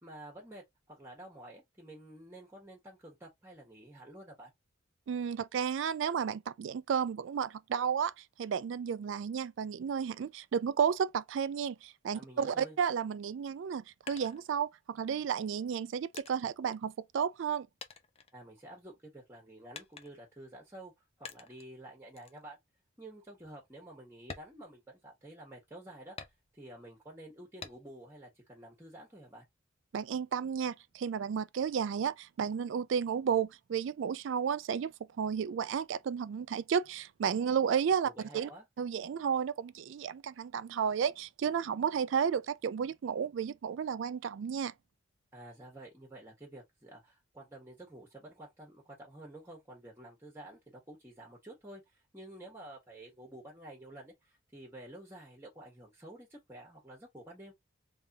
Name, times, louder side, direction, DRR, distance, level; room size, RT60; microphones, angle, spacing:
voice 1, 0.0-4.5 12.1-12.8 18.3-20.9 21.2-22.6 23.0-26.2 26.5-29.4 38.0-38.7 45.3-57.5, right 1 dB, 10° right, 1.6 m, -50 dB
voice 2, 5.1-17.7 29.9-38.5 38.8-44.7, right 7 dB, 65° right, 0.3 m, -32 dB
sound 1, 13.6-15.0 15.7-17.5 17.8-19.0 19.7-20.4 21.3-21.7 22.2-22.4 22.9-23.0 23.4-23.6 24.2-25.4 26.2-26.8 27.6-28.1 28.5-29.4, left 5 dB, 30° left, 0.6 m, -50 dB
3.5 x 3.4 x 2.7 m
head